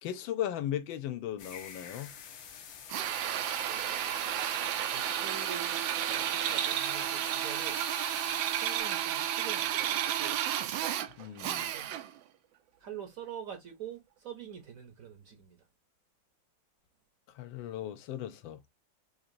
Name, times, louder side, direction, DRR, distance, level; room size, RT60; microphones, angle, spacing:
voice 1, 0.0-2.1 11.2-11.7 17.3-18.6, left 11 dB, 80° left, 1.3 m, -37 dB
sound 1, 1.4-8.8, left 7 dB, 60° left, 1.1 m, -47 dB
Drill, 2.9-12.2, right 11 dB, 80° right, 1.3 m, -32 dB
voice 2, 3.6-4.1 4.9-7.8 8.5-10.4 11.5-11.9 12.8-15.6, right 9 dB, 55° right, 1.0 m, -45 dB
4.8 x 2.8 x 2.6 m
omnidirectional pair, 2.1 m